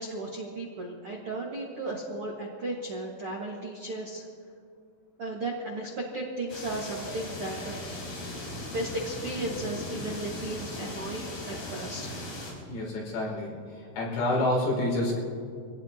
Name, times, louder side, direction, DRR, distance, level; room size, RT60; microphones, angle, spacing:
voice 1, 0.0-4.3 5.2-7.8 8.7-12.2, right 2 dB, 85° right, -2 dB, 1.2 m, -35 dB
sound 1, 6.5-12.5, left 1 dB, 50° left, 6.1 m, -38 dB
voice 2, 12.7-13.6 14.0-15.2, left 1 dB, 85° left, -3 dB, 8.0 m, -27 dB
26.0 x 18.0 x 2.9 m, 2.3 s
omnidirectional pair, 5.6 m